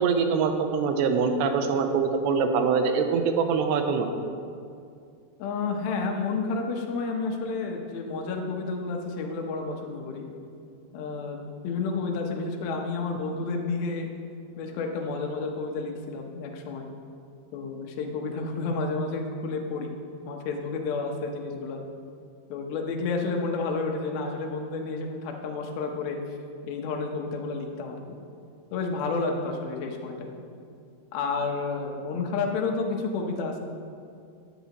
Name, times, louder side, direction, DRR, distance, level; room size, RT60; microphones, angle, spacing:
voice 1, 0.0-4.1, right 5 dB, 85° right, 6 dB, 2.9 m, -24 dB
voice 2, 5.4-10.3 10.9-14.1 14.6-16.9 17.5-20.0 20.3-21.8 22.5-26.2 26.6-28.0 28.7-30.5 31.1-33.6, left 4 dB, 70° left, 2 dB, 2.7 m, -30 dB
14.0 x 10.5 x 3.0 m, 2.4 s
omnidirectional pair, 4.9 m